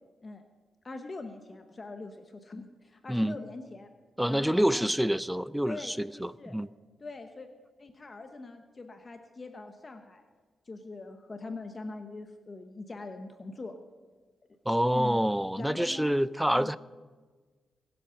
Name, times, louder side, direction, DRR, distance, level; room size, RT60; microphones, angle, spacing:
voice 1, 0.8-3.9 4.3-4.9 5.6-6.6 7.0-7.5 7.8-10.2 10.7-13.7 14.9-15.2 15.6-16.2 16.5-16.7, left 3 dB, 35° left, 1.0 m, -42 dB
voice 2, 4.2-6.7 14.7-16.8, equal, 5° right, 0.4 m, -27 dB
20.0 x 7.8 x 5.8 m
cardioid pair, 75°, 0 cm